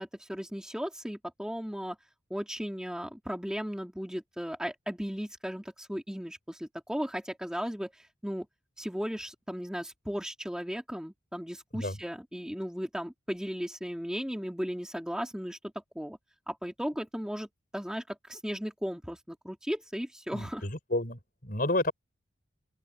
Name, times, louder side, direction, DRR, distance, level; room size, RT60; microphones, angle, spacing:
voice 1, 0.0-2.0 2.3-8.5 8.8-15.6 16.0-16.2 16.5-17.5 17.7-20.6, equal, 5° right, 2.0 m, -36 dB
voice 2, 20.3-21.9, left 1 dB, 45° left, 5.2 m, -31 dB
open air
head